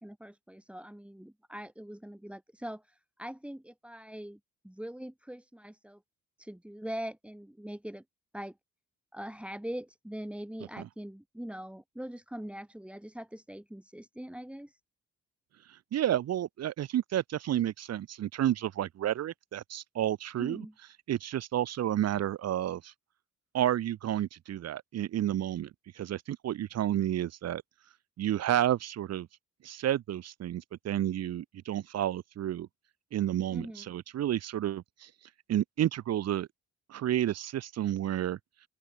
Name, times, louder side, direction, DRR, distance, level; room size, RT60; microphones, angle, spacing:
voice 1, 0.0-6.0 6.4-8.0 8.3-8.6 9.1-14.8 20.3-20.7 33.5-33.9, equal, 5° right, 2.8 m, -42 dB
voice 2, 15.9-20.7 21.1-22.9 23.5-27.6 28.2-29.3 29.6-32.7 33.1-35.1 35.5-36.5 36.9-38.4, right 12 dB, 55° right, 0.8 m, -31 dB
open air
cardioid pair, 90°, 30 cm